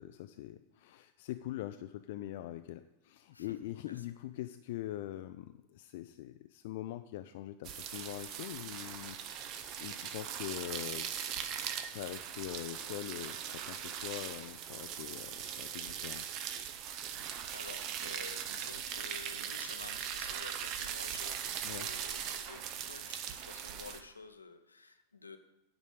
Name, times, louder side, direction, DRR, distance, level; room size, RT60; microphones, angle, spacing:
voice 1, 0.0-11.2 11.7-16.3 21.6-21.9, left 14 dB, 50° left, 9 dB, 0.4 m, -43 dB
sound 1, 7.6-24.0, right 9 dB, 40° right, 0.8 m, -40 dB
voice 2, 17.5-25.4, left 3 dB, 80° left, 8 dB, 0.8 m, -51 dB
9.5 x 5.2 x 8.0 m, 0.96 s
figure-of-eight pair, 90°, 0 cm